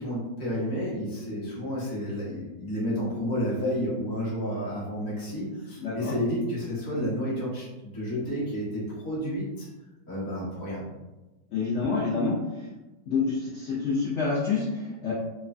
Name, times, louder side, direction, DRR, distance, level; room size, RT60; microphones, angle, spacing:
voice 1, 0.0-9.7 10.1-10.8, equal, 25° left, -8 dB, 0.4 m, -31 dB
voice 2, 5.8-6.1 11.5-12.4 13.1-15.1, left 4 dB, 85° left, -7 dB, 0.6 m, -27 dB
3.0 x 2.1 x 2.5 m, 1.1 s
omnidirectional pair, 1.9 m